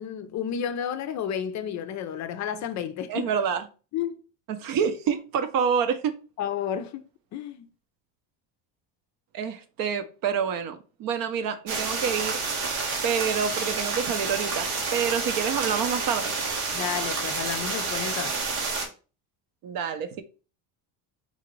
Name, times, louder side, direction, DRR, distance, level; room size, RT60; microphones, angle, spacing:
voice 1, 0.0-3.3 3.9-4.2 6.4-7.0 7.3-7.7 16.7-18.4, left 9 dB, 45° left, 0.4 m, -31 dB
voice 2, 3.1-3.7 4.5-6.2 9.3-12.7 13.0-16.3 19.6-20.2, right 7 dB, 55° right, 0.6 m, -28 dB
sound 1, 11.7-18.9, right 4 dB, 90° right, 1.1 m, -29 dB
3.8 x 2.4 x 3.0 m
supercardioid pair, 110°, 41 cm